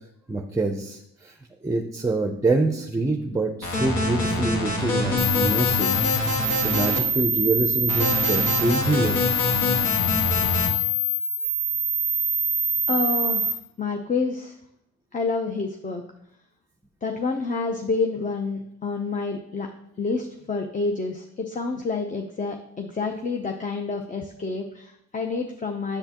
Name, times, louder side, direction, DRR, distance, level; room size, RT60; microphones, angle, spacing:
voice 1, 0.3-1.4 1.6-5.9 6.6-9.2, right 2 dB, 10° right, 4 dB, 0.6 m, -25 dB
sound 1, 3.6-7.0 7.9-10.7, left 1 dB, 75° left, 1.8 m, -25 dB
sound 2, 5.2-13.5, left 1 dB, 45° left, 2.4 m, -25 dB
voice 2, 12.9-14.5 15.1-16.0 17.0-19.7 20.0-26.0, left 4 dB, 25° left, 3 dB, 0.7 m, -28 dB
7.8 x 6.9 x 2.9 m, 0.76 s
cardioid pair, 90°, 30 cm